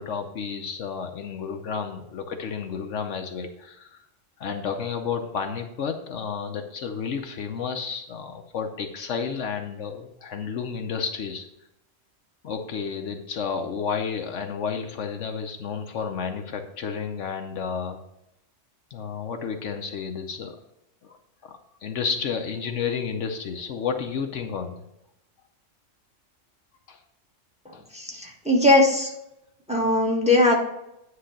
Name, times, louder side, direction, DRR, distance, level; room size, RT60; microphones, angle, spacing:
voice 1, 0.0-4.0 4.4-11.5 12.4-18.0 18.9-20.6 21.0-21.2 21.4-21.5 21.8-24.8 26.9-27.0 27.7-27.8, left 6 dB, 70° left, 5 dB, 1.0 m, -31 dB
voice 2, 27.9-29.1 29.7-30.6, left 2 dB, 5° right, 0 dB, 1.3 m, -20 dB
9.6 x 3.3 x 6.4 m, 0.84 s
omnidirectional pair, 1.3 m